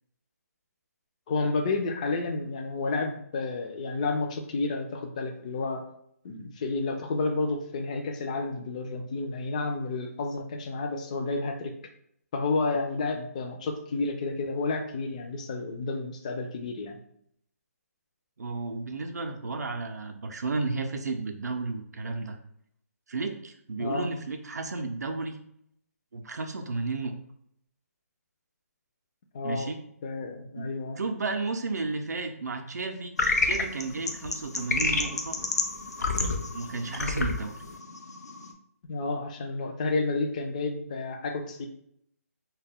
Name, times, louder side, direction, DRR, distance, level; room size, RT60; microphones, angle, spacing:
voice 1, 1.3-5.8 6.2-11.7 12.3-17.0 23.8-24.1 29.3-29.7 30.0-31.0 38.9-41.7, left 3 dB, 25° left, 4 dB, 0.3 m, -30 dB
voice 2, 18.4-22.4 23.1-25.4 26.1-27.1 29.4-29.8 30.6-30.7 31.0-33.1 33.4-35.4 36.5-37.6, right 3 dB, 90° right, 4 dB, 0.4 m, -33 dB
sound 1, 33.2-38.5, left 3 dB, 85° left, 0.5 m, -29 dB
2.2 x 2.1 x 3.5 m, 0.71 s
hypercardioid pair, 160°, 9 cm